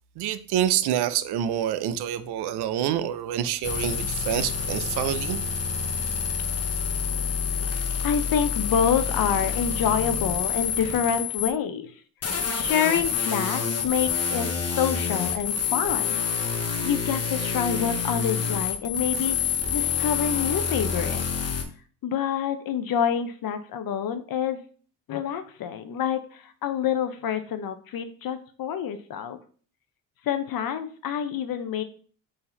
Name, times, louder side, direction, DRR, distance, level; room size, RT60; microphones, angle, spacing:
voice 1, 0.2-5.4, right 10 dB, 60° right, 0.6 m, -27 dB
sound 1, 3.6-11.5 12.2-21.6, left 6 dB, 35° left, 0.9 m, -27 dB
voice 2, 8.0-11.9 12.6-14.5 14.8-16.4 16.8-19.4 19.7-21.2 22.0-24.6 25.1-29.4 30.2-31.8, left 8 dB, 50° left, 0.6 m, -27 dB
3.9 x 2.7 x 4.3 m
supercardioid pair, 60°, 44 cm